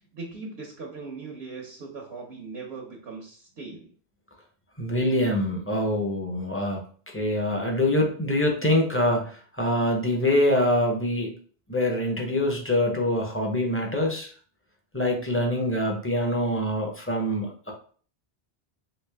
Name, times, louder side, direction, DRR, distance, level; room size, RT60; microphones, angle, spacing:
voice 1, 0.1-3.9, right 4 dB, 85° right, -1 dB, 1.1 m, -39 dB
voice 2, 4.8-6.8 7.1-11.3 11.7-14.3 14.9-17.7, left 1 dB, 15° left, 0 dB, 0.6 m, -25 dB
3.2 x 2.8 x 3.3 m, 0.44 s
omnidirectional pair, 1.1 m